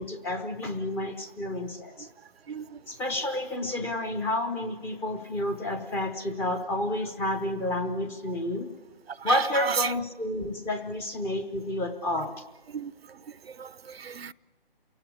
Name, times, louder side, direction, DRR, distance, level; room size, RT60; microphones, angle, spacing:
voice 1, 0.0-2.1 2.9-8.7 9.2-12.3, left 1 dB, 5° left, 0.7 m, -30 dB
voice 2, 2.5-2.8 9.1-9.9 12.1-12.3 12.7-14.3, right 6 dB, 75° right, 0.7 m, -34 dB
28.5 x 17.5 x 8.4 m
figure-of-eight pair, 145°, 30 cm